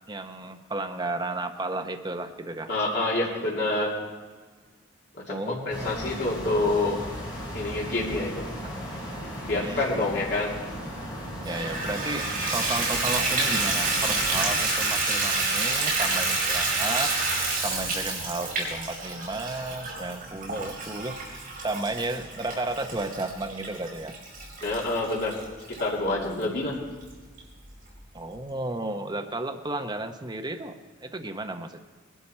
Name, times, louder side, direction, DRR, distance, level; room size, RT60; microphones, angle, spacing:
voice 1, 0.1-2.7 5.3-6.2 8.6-8.7 9.5-10.0 11.4-17.1 17.6-24.1 28.1-31.8, right 2 dB, 20° right, 5 dB, 0.7 m, -33 dB
voice 2, 2.7-3.9 5.3-7.0 7.5-8.5 9.4-10.5 24.6-25.3 25.8-26.7, left 2 dB, 55° left, -4 dB, 2.6 m, -27 dB
sound 1, 5.7-14.7, equal, 20° left, 3.5 m, -37 dB
Water tap faucet / Bathtub (filling or washing), 11.4-25.8 26.4-26.5 27.0-27.1 27.4-27.5, right 3 dB, 45° right, 4.5 m, -28 dB
19.5 x 12.0 x 4.3 m, 1.4 s
head